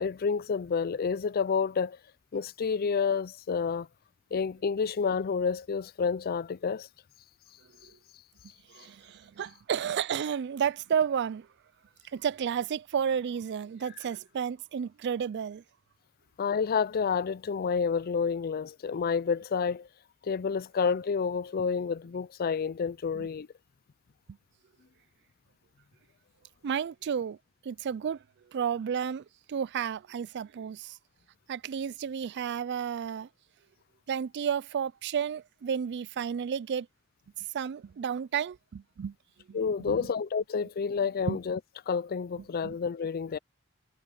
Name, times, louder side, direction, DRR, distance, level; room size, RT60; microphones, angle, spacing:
voice 1, 0.0-2.0 2.3-3.9 4.3-6.9 16.4-19.9 20.2-23.5 39.5-41.6 41.9-43.4, left 5 dB, 45° left, 0.4 m, -29 dB
voice 2, 8.7-11.5 12.1-15.6 23.1-23.3 26.6-27.4 27.6-28.2 28.5-31.0 31.5-33.3 34.1-36.9 37.4-39.1 39.5-39.6 39.9-40.1 41.3-41.4 42.6-42.7, right 7 dB, 55° right, 0.4 m, -32 dB
head